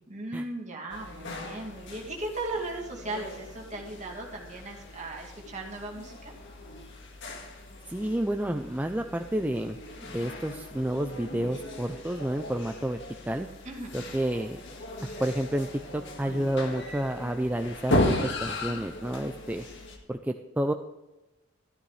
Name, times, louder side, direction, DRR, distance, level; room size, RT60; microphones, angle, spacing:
voice 1, 0.1-6.3 13.6-14.0, right 2 dB, 35° right, -1 dB, 2.4 m, -37 dB
sound 1, 0.9-20.0, left 1 dB, 65° left, 1.8 m, -36 dB
voice 2, 7.9-13.0 13.3-13.5 13.9-14.6 15.0-15.7 15.9-19.6 20.1-20.7, right 1 dB, 10° right, 5 dB, 0.4 m, -30 dB
13.0 x 12.5 x 3.3 m, 1.0 s
head